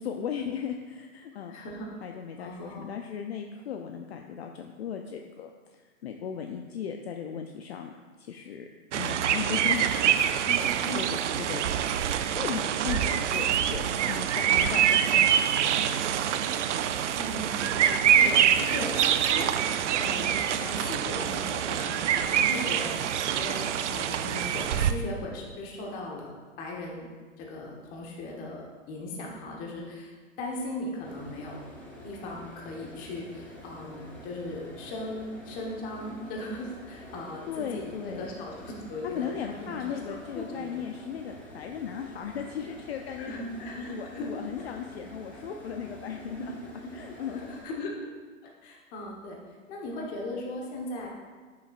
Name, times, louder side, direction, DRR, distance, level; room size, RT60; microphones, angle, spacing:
voice 1, 0.0-1.6 2.0-5.5 5.8-7.9 8.2-8.7 8.9-10.3 10.9-11.1 11.4-11.6 12.2-15.3 37.5-38.3 39.1-43.4 43.9-46.5 46.9-47.4, left 8 dB, 50° left, 4 dB, 0.5 m, -36 dB
voice 2, 1.5-1.9 2.4-2.9 10.4-11.0 17.2-19.5 20.0-27.1 27.4-30.1 30.4-31.6 32.0-40.8 43.2-44.3 46.3-46.5 46.8-48.0 48.6-49.4 49.7-51.1, left 1 dB, 20° left, -1 dB, 1.1 m, -38 dB
sound 1, 8.9-24.9, right 9 dB, 60° right, 0.5 m, -25 dB
sound 2, 31.0-47.6, equal, 5° left, 0.8 m, -47 dB
11.0 x 6.3 x 2.4 m, 1.4 s
hypercardioid pair, 150°, 40 cm